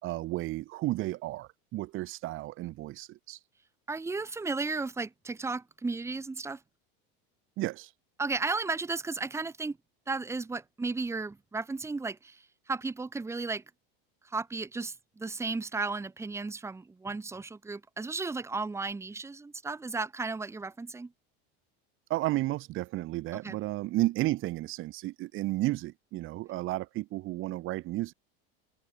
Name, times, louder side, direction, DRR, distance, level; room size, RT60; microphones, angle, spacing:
voice 1, 0.0-3.4 7.6-7.9 22.1-28.1, right 17 dB, 45° right, 3.0 m, -32 dB
voice 2, 3.9-6.6 8.2-9.8 10.1-13.6 14.2-21.1 23.4-23.6, right 3 dB, 10° right, 2.7 m, -34 dB
supercardioid pair, 150°, 29 cm